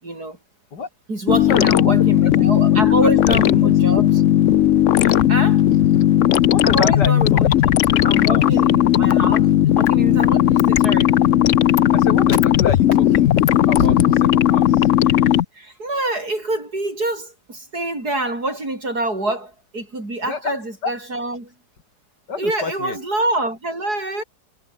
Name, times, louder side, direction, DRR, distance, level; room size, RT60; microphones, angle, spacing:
voice 1, 0.0-0.4 1.1-4.2 5.3-5.6 6.6-11.1 15.2-21.5 22.4-24.2, right 2 dB, 65° right, 8.3 m, -26 dB
voice 2, 1.3-1.9 2.2-2.3 2.9-3.7 5.0-5.2 5.9-6.1 6.5-7.4 8.2-8.4 11.9-13.3 13.7-14.9 20.2-20.5 20.8-20.9 22.3-23.0, left 5 dB, 85° left, 3.3 m, -27 dB
sound 1, 1.3-15.4, left 11 dB, 60° left, 0.9 m, -16 dB
omnidirectional pair, 1.8 m